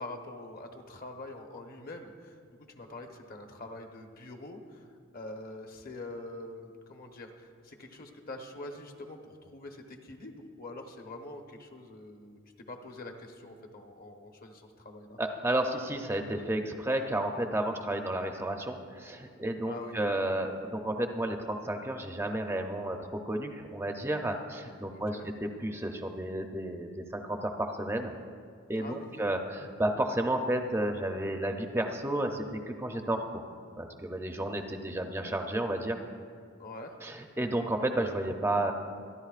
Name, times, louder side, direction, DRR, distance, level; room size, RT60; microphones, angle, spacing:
voice 1, 0.0-4.9 5.1-12.4 12.7-15.2 19.7-20.0 24.8-25.3 28.8-29.2 36.6-37.0, left 2 dB, 45° left, 3 dB, 1.1 m, -45 dB
voice 2, 15.2-23.0 23.3-28.1 28.7-33.4 33.8-36.0 37.0-38.7, right 1 dB, 10° right, 4 dB, 0.6 m, -32 dB
26.0 x 11.0 x 2.5 m, 2.1 s
head